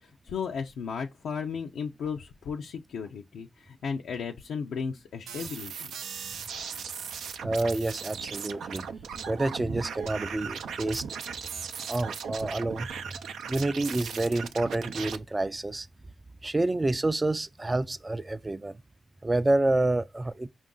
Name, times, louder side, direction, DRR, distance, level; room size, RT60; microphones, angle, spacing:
voice 1, 0.0-5.9, left 6 dB, 85° left, 0.5 m, -35 dB
sound 1, 5.3-15.2, right 6 dB, 85° right, 0.5 m, -38 dB
voice 2, 7.4-8.8 9.3-11.0 11.9-12.9 13.5-15.9 16.4-18.8 19.2-20.5, right 2 dB, 25° right, 0.4 m, -28 dB
5.1 x 2.4 x 3.7 m
cardioid pair, 55°, 0 cm